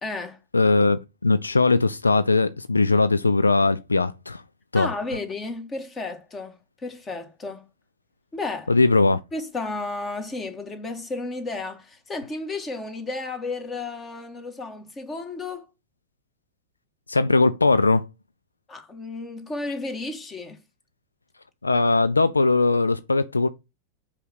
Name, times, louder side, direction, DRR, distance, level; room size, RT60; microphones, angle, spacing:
voice 1, 0.0-0.4 4.7-6.6 6.8-7.6 8.3-8.7 9.3-15.6 18.7-20.6, left 3 dB, 20° left, 1.7 m, -33 dB
voice 2, 0.5-4.4 4.7-4.9 8.7-9.2 17.1-18.1 21.6-23.5, left 3 dB, 80° left, 0.3 m, -20 dB
5.5 x 4.9 x 5.7 m
figure-of-eight pair, 90°, 0 cm